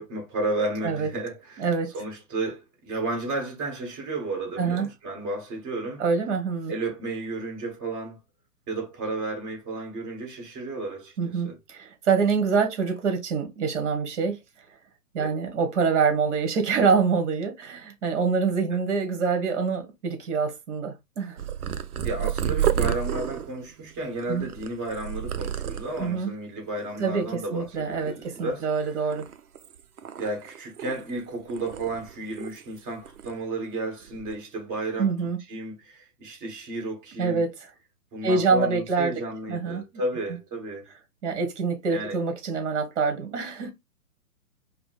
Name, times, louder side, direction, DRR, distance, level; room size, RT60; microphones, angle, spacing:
voice 1, 0.0-1.7 1.9-6.0 6.7-8.2 8.7-11.6 15.2-15.3 22.0-28.7 30.2-35.1 35.5-37.4 38.1-40.9 41.9-42.2, right 2 dB, 30° right, 1.8 m, -32 dB
voice 2, 1.6-1.9 4.6-4.9 6.0-6.7 11.2-14.4 15.1-21.4 24.3-24.5 26.0-26.3 27.0-29.2 35.0-35.4 37.2-37.5 38.2-39.1 39.5-39.8 41.2-43.7, right 5 dB, 50° right, 1.6 m, -25 dB
Purr, 21.4-26.2 26.8-27.3 27.5-28.7 29.1-31.2 31.5-32.8 33.0-33.4 34.0-34.3, right 10 dB, 70° right, 0.7 m, -31 dB
4.9 x 2.2 x 3.3 m
figure-of-eight pair, 125°, 46 cm